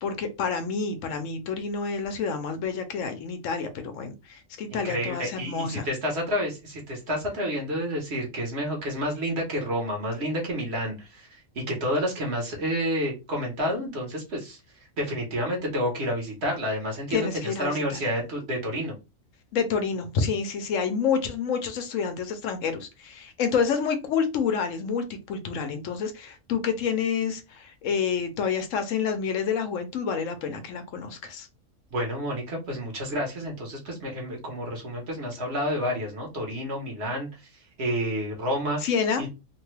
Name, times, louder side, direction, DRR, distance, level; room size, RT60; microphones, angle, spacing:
voice 1, 0.0-5.9 17.1-18.0 19.5-31.5 38.8-39.2, left 6 dB, 70° left, 0.9 m, -28 dB
voice 2, 4.7-14.6 15.0-18.9 31.9-37.3 37.8-38.8 39.2-39.3, equal, 55° right, 1.2 m, -29 dB
2.9 x 2.2 x 3.1 m
omnidirectional pair, 1.5 m